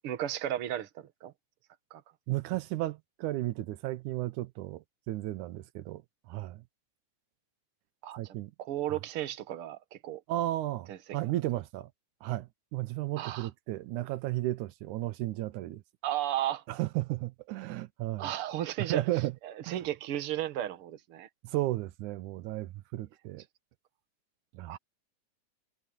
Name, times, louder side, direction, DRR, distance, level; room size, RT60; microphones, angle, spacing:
voice 1, 0.0-1.3 1.9-2.0 8.0-10.2 10.9-11.0 13.2-13.5 16.0-16.6 18.2-19.1 19.4-21.3 24.7-24.8, right 12 dB, 55° right, 2.0 m, -34 dB
voice 2, 2.3-6.0 6.3-6.6 8.2-8.5 10.3-11.9 12.2-15.8 16.7-18.3 18.8-19.3 19.7-19.8 21.4-23.4 24.5-24.8, right 16 dB, 85° right, 2.3 m, -34 dB
omnidirectional pair, 3.4 m